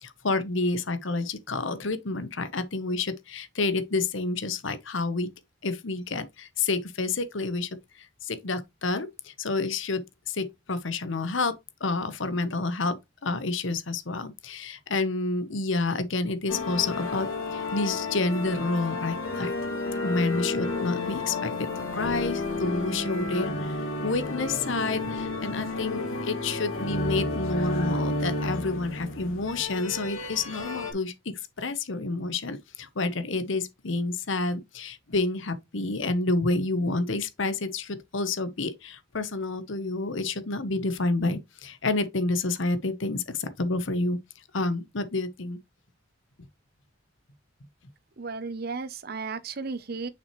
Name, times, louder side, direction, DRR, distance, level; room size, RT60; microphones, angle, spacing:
voice 1, 0.0-5.3 5.6-7.7 8.2-13.0 13.2-19.5 20.0-21.5 21.9-44.2 44.5-45.6, left 3 dB, 65° left, 1.0 m, -29 dB
sound 1, 16.5-30.9, left 2 dB, 85° left, 2.2 m, -31 dB
voice 2, 48.2-50.1, right 4 dB, 50° right, 0.7 m, -34 dB
6.5 x 5.6 x 3.1 m
head